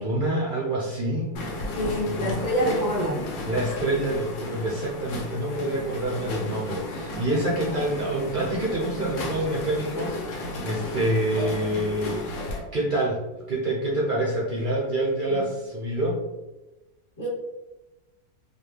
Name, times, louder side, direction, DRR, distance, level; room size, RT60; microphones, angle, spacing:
voice 1, 0.0-1.3 2.0-2.4 3.4-16.2, right 1 dB, 65° right, -6 dB, 0.4 m, -27 dB
sound 1, 1.4-12.6, left 2 dB, 90° left, 1.5 m, -34 dB
voice 2, 1.7-3.2 7.6-7.8 15.3-15.4 17.2-17.3, equal, 15° left, -6 dB, 0.6 m, -26 dB
4.3 x 2.2 x 3.2 m, 1.1 s
omnidirectional pair, 2.0 m